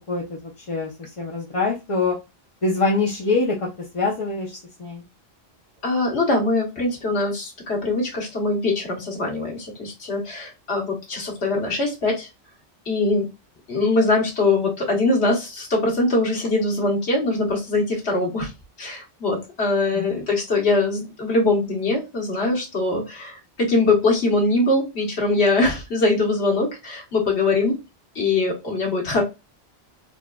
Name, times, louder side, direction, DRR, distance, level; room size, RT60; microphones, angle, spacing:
voice 1, 0.1-2.2 2.6-3.7 3.9-5.0 19.9-20.2, left 3 dB, 40° left, -2 dB, 0.6 m, -24 dB
voice 2, 5.8-12.3 12.8-13.2 13.7-18.5 18.8-27.7 28.1-29.2, left 2 dB, 90° left, -1 dB, 1.5 m, -22 dB
3.8 x 2.4 x 2.2 m, 0.25 s
omnidirectional pair, 1.1 m